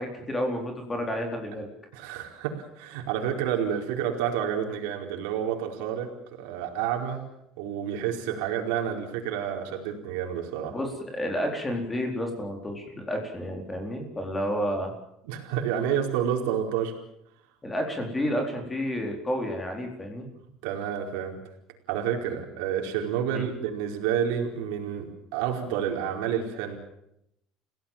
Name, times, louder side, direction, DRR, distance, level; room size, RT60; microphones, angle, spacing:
voice 1, 0.0-1.7 10.7-14.9 17.6-20.3 23.3-23.4, equal, 15° left, 3 dB, 4.2 m, -30 dB
voice 2, 1.9-6.1 6.4-7.2 7.6-10.8 15.2-16.9 20.6-21.4 21.9-26.8, right 9 dB, 90° right, 3 dB, 4.6 m, -29 dB
29.5 x 17.0 x 7.4 m, 0.77 s
cardioid pair, 150°, 0 cm